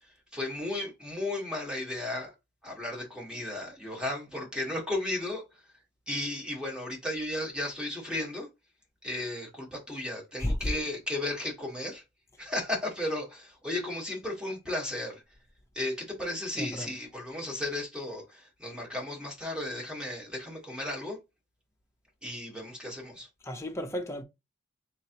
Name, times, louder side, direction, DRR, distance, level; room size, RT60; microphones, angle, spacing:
voice 1, 0.3-2.3 2.6-5.6 6.1-8.5 9.0-12.0 12.4-15.2 15.7-21.2 22.2-23.3, left 1 dB, 5° right, 1.4 m, -34 dB
voice 2, 16.6-16.9 23.5-24.2, left 1 dB, 15° left, 0.8 m, -33 dB
4.0 x 3.0 x 2.9 m
head